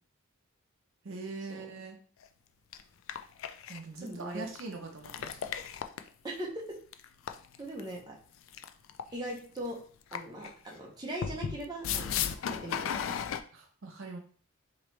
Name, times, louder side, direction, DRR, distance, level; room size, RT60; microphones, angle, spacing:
voice 1, 1.0-2.0 3.7-5.4 13.5-14.2, right 3 dB, 60° right, 2 dB, 0.6 m, -42 dB
sound 1, 2.2-2.3 2.7-2.8 3.1-4.1 4.5-4.6 5.0-6.1 6.9-7.8 8.5-9.1 9.4-9.6 10.1-10.5 11.2-13.4, left 8 dB, 60° left, 0.3 m, -35 dB
voice 2, 4.0-4.5 6.2-6.5 7.6-8.1 9.1-9.8 10.1-12.2 12.6-13.2, right 1 dB, 20° right, -2 dB, 0.9 m, -40 dB
4.0 x 3.0 x 3.2 m, 0.43 s
head